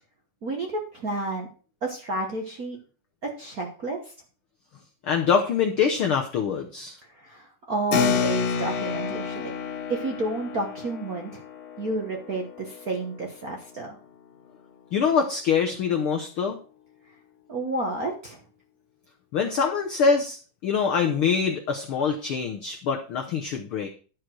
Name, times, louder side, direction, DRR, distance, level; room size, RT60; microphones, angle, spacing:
voice 1, 0.4-1.5 1.8-2.8 3.2-4.0 7.2-9.5 9.9-11.4 11.8-14.0 17.5-18.4, right 2 dB, 70° right, 1 dB, 0.8 m, -30 dB
voice 2, 5.0-6.9 14.9-16.6 19.3-20.4 20.6-23.9, left 6 dB, 85° left, 3 dB, 1.1 m, -24 dB
Keyboard (musical), 7.9-13.9, left 7 dB, 65° left, 1.9 m, -30 dB
12.0 x 4.9 x 6.1 m, 0.39 s
omnidirectional pair, 3.7 m